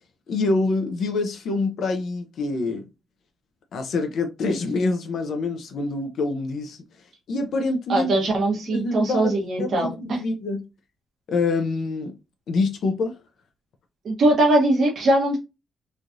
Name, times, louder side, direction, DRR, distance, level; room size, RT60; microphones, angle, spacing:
voice 1, 0.3-2.9 3.7-6.8 7.3-8.1 8.7-9.3 9.6-10.7 11.3-12.2 12.5-13.2, left 3 dB, 55° left, 0.5 m, -26 dB
voice 2, 7.9-10.2 14.0-15.4, right 1 dB, 45° right, 1.0 m, -21 dB
3.1 x 2.4 x 2.6 m
cardioid pair, 165°, 0 cm